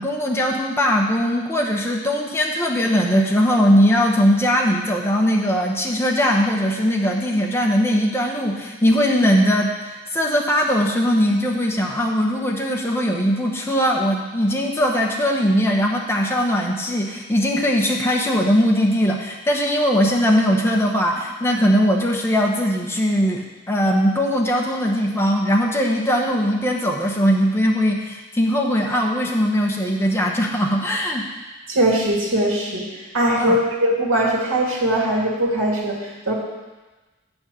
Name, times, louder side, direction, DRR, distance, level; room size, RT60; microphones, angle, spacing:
voice 1, 0.0-31.3 33.4-33.6, equal, 10° left, -1 dB, 1.0 m, -20 dB
voice 2, 31.7-32.9 33.1-36.3, right 1 dB, 80° right, -3 dB, 2.5 m, -20 dB
8.7 x 6.2 x 6.3 m, 1.2 s
head